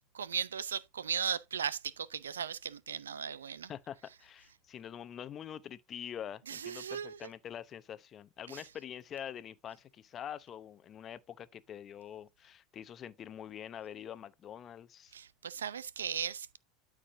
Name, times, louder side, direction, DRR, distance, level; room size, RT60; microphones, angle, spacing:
voice 1, 0.1-3.7 6.5-7.3 8.5-8.6 15.1-16.6, right 7 dB, 90° right, 0.5 m, -37 dB
voice 2, 3.7-15.1, left 9 dB, 40° left, 0.7 m, -45 dB
12.5 x 4.9 x 2.7 m
hypercardioid pair, 90°, 0 cm